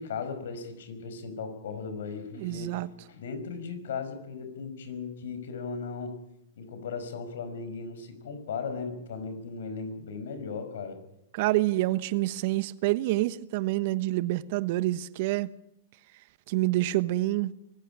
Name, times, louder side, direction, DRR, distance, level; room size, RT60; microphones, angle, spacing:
voice 1, 0.0-2.8 3.1-6.2 6.6-11.0, left 5 dB, 70° left, 5.3 m, -37 dB
voice 2, 2.4-2.9 11.3-15.5 16.5-17.5, right 17 dB, 55° right, 1.1 m, -27 dB
24.0 x 15.5 x 10.0 m
hypercardioid pair, 105°, 0 cm